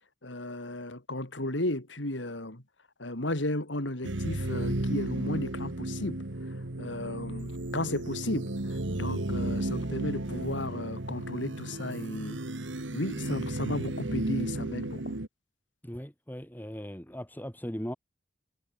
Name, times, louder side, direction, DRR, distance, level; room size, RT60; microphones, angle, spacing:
voice 1, 0.2-2.6 3.0-6.2 6.8-12.4 12.9-15.2, left 1 dB, 80° left, 4.1 m, -34 dB
sound 1, 4.0-15.3, right 1 dB, 85° right, 1.8 m, -33 dB
voice 2, 15.8-17.9, equal, 10° left, 4.6 m, -38 dB
head